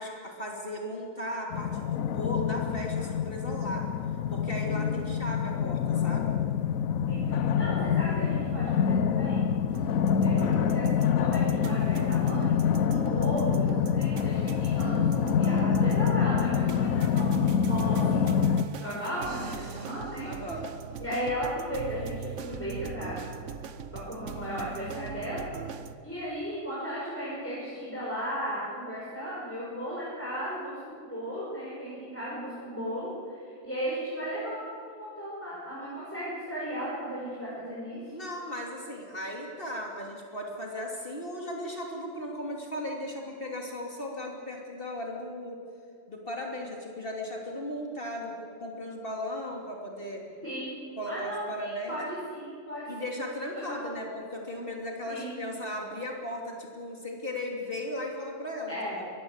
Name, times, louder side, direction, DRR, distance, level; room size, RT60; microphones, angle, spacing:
voice 1, 0.0-3.8 4.3-6.3 20.2-20.7 38.1-45.6 46.1-50.2 51.0-52.0 52.9-54.1 54.3-59.0, left 1 dB, 40° left, -1 dB, 3.1 m, -36 dB
sound 1, 1.5-18.6, left 7 dB, 80° left, 1.2 m, -26 dB
voice 2, 4.6-5.0 7.1-9.5 10.2-12.6 12.9-20.3 21.0-23.3 23.9-25.4 26.0-30.8 31.0-38.0 50.4-50.7 51.1-53.2 53.5-53.9 55.1-55.4 58.7-59.1, equal, 10° left, -8 dB, 5.8 m, -36 dB
sound 2, 9.7-26.0, right 7 dB, 65° right, 1.2 m, -41 dB
23.0 x 18.5 x 8.1 m, 2.4 s
omnidirectional pair, 1.4 m